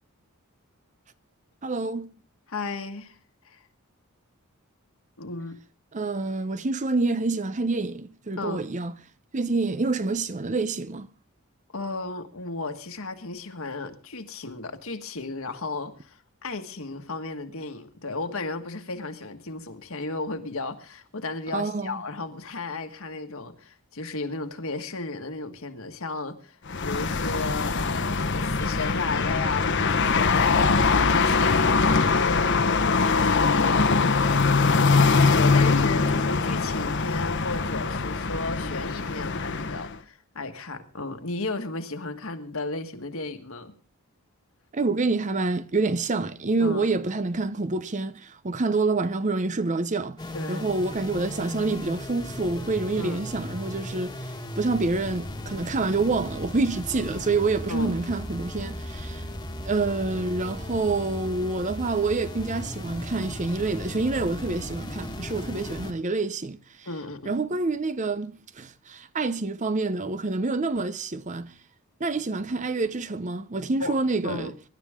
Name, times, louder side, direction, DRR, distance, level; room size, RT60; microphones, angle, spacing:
voice 1, 1.6-2.1 5.9-8.9 9.3-11.1 21.5-22.0 44.7-50.2 50.5-59.2 59.6-66.9 67.3-71.5 72.0-74.5, right 3 dB, 35° right, 0.7 m, -27 dB
voice 2, 2.5-3.2 3.4-3.7 5.2-5.6 8.4-8.6 11.7-43.7 46.6-46.9 50.3-50.7 53.0-53.2 57.7-58.0 66.8-67.3 73.8-74.0 74.2-74.5, left 3 dB, 70° left, 1.6 m, -34 dB
sound 1, 26.7-40.0, left 4 dB, 55° left, 1.0 m, -22 dB
sound 2, 50.2-65.9, left 1 dB, 20° left, 1.6 m, -36 dB
23.5 x 11.5 x 3.6 m
head